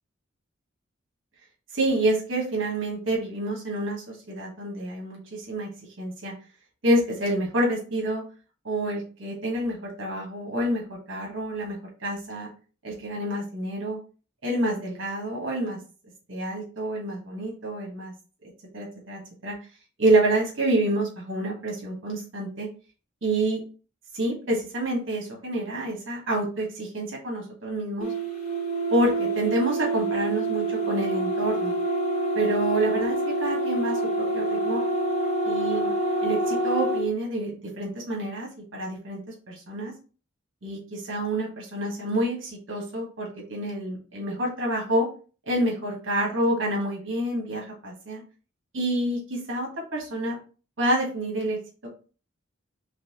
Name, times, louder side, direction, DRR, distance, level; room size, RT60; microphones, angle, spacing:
voice 1, 1.7-5.7 6.0-6.3 6.8-8.2 8.6-12.5 12.8-14.0 14.4-15.8 16.3-18.1 18.7-19.5 20.0-22.7 23.2-23.6 24.1-28.1 28.9-31.7 32.3-34.8 35.4-35.9 36.2-39.2 39.5-39.9 40.6-45.1 45.5-48.2 48.7-50.4 50.8-51.6, right 1 dB, 70° right, -1 dB, 1.3 m, -28 dB
sound 1, 28.0-37.1, right 2 dB, 35° left, 1.5 m, -26 dB
4.1 x 3.0 x 2.8 m, 0.37 s
head